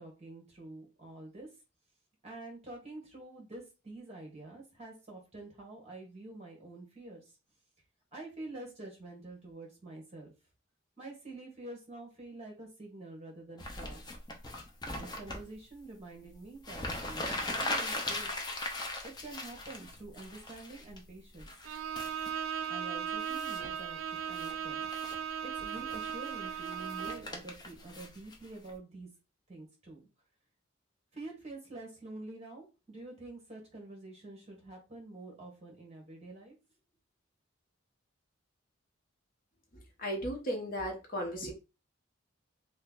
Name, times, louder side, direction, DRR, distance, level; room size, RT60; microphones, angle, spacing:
voice 1, 0.0-1.5 2.2-7.3 8.1-10.3 11.0-14.0 14.9-18.4 19.0-21.5 22.7-24.9 25.4-29.1 29.5-30.0 31.1-36.5, right 2 dB, 30° right, 0 dB, 1.3 m, -47 dB
sound 1, 13.6-15.4 16.3-16.4 16.6-21.0 21.4-22.3 23.2-23.8 24.2-24.5 24.8-25.2 25.6-28.7, left 2 dB, 20° left, 0.5 m, -39 dB
Bowed string instrument, 21.6-27.3, right 8 dB, 80° right, 0.3 m, -37 dB
voice 2, 40.0-41.5, equal, 45° left, 1 dB, 0.9 m, -35 dB
3.1 x 2.4 x 3.7 m, 0.28 s
head